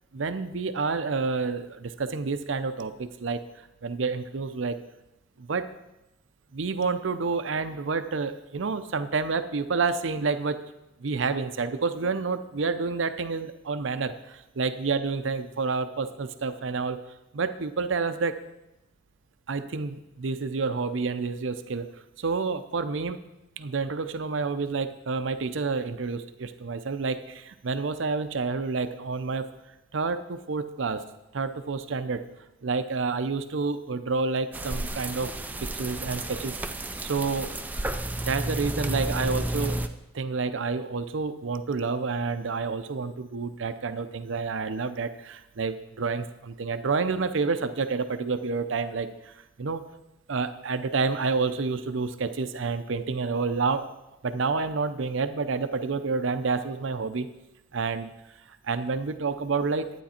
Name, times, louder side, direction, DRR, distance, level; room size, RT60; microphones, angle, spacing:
voice 1, 0.1-3.4 3.8-4.8 5.4-5.7 6.5-10.6 11.0-17.0 17.3-18.4 19.5-21.9 22.2-23.2 23.6-29.5 29.9-31.0 31.3-32.2 32.6-35.3 35.6-36.6 37.0-37.5 38.2-39.8 40.1-49.8 50.3-53.9 54.2-57.3 57.7-58.1 58.6-59.9, right 4 dB, 80° right, 11 dB, 0.6 m, -29 dB
sound 1, 34.5-39.9, right 1 dB, 10° right, 0.4 m, -31 dB
12.0 x 9.2 x 4.3 m, 0.93 s
head